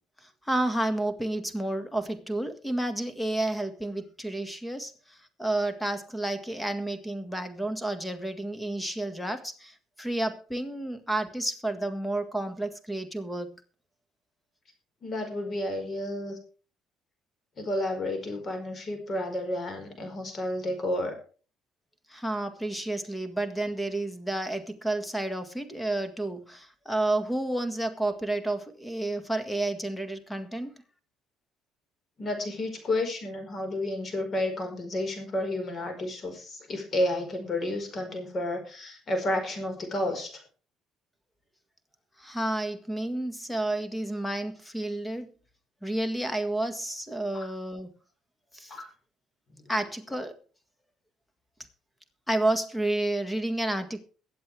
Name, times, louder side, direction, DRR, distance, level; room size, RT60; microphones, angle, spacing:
voice 1, 0.2-13.6 22.1-30.8 42.2-45.3 45.8-47.9 48.5-48.8 49.7-50.4 52.3-54.0, right 1 dB, 5° left, 9 dB, 1.8 m, -31 dB
voice 2, 15.0-16.4 17.6-21.2 32.2-40.4 48.7-48.9, left 1 dB, 35° left, 6 dB, 4.7 m, -31 dB
22.5 x 7.9 x 3.4 m, 0.38 s
cardioid pair, 110°, 0 cm